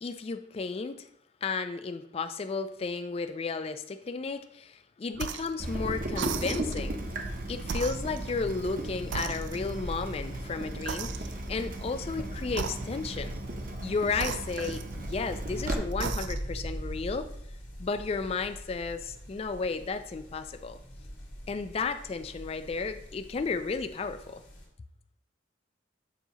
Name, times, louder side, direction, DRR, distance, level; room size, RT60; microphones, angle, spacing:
voice 1, 0.0-1.1 1.4-7.2 7.5-13.3 13.8-17.3 17.8-20.8 21.5-24.4, left 4 dB, 30° left, 9 dB, 0.3 m, -33 dB
sound 1, 5.1-5.6 6.1-6.9 7.6-8.8 9.1-9.9 10.9-11.6 12.5-13.2 14.1-15.3 15.9-16.6, right 7 dB, 70° right, 0.4 m, -38 dB
Water tap faucet / Drip, 5.6-15.8, right 1 dB, 50° right, 0.8 m, -36 dB
sound 2, 7.2-24.7, equal, 85° left, 2.1 m, -43 dB
7.0 x 2.8 x 5.5 m, 0.71 s
head